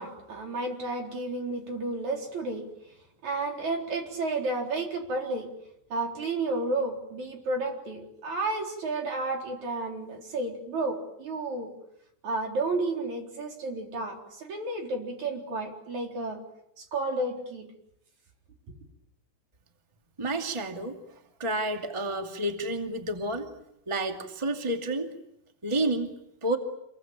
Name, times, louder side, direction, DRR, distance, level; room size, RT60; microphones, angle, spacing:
voice 1, 0.0-2.7 3.2-5.5 5.9-11.7 12.2-16.4 16.8-17.7, right 2 dB, 75° right, 2 dB, 5.4 m, -32 dB
voice 2, 20.2-21.0 21.4-23.5 23.9-25.1 25.6-26.1 26.4-26.6, right 1 dB, 10° right, 4 dB, 2.0 m, -30 dB
27.5 x 22.5 x 9.0 m, 0.80 s
omnidirectional pair, 3.4 m